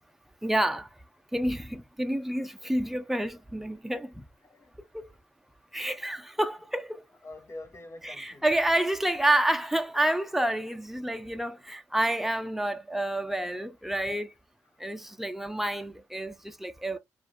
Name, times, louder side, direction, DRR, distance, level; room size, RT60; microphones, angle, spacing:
voice 1, 0.4-0.9 1.3-4.2 4.9-5.1 5.7-7.0 8.0-14.3 14.8-17.0, right 1 dB, 5° right, 0.8 m, -29 dB
voice 2, 6.9-8.5 15.0-15.1, left 2 dB, 40° left, 1.3 m, -46 dB
4.7 x 2.6 x 3.4 m
hypercardioid pair, 50°, 8 cm